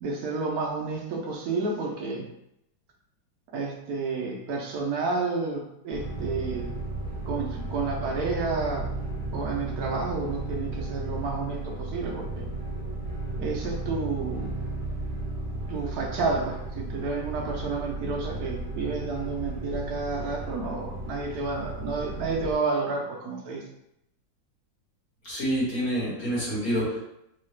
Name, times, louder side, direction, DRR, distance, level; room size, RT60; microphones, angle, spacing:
voice 1, 0.0-2.3 3.5-6.7 7.3-8.9 9.3-12.5 13.4-14.5 15.7-23.6, right 4 dB, 65° right, -1 dB, 1.0 m, -30 dB
sound 1, 5.9-22.5, right 2 dB, 30° right, 1.6 m, -34 dB
voice 2, 25.2-27.0, equal, 50° left, -8 dB, 1.8 m, -27 dB
3.7 x 2.3 x 3.2 m, 0.81 s
omnidirectional pair, 2.0 m